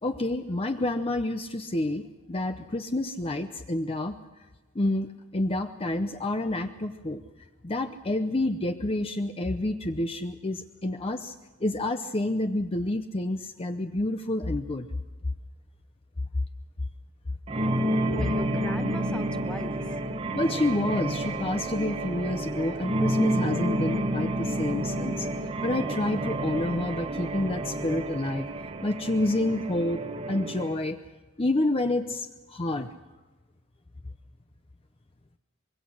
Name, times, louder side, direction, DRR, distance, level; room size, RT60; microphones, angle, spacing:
voice 1, 0.0-4.2 4.7-7.2 7.6-11.3 11.6-14.9 20.3-25.3 25.6-28.5 28.8-30.0 30.3-31.0 31.4-32.9, left 1 dB, 25° left, 7 dB, 0.7 m, -29 dB
sound 1, 17.5-30.7, right 1 dB, 25° right, 1.1 m, -30 dB
voice 2, 18.0-20.0, equal, 5° left, 8 dB, 1.0 m, -39 dB
25.0 x 22.0 x 6.3 m, 1.2 s
head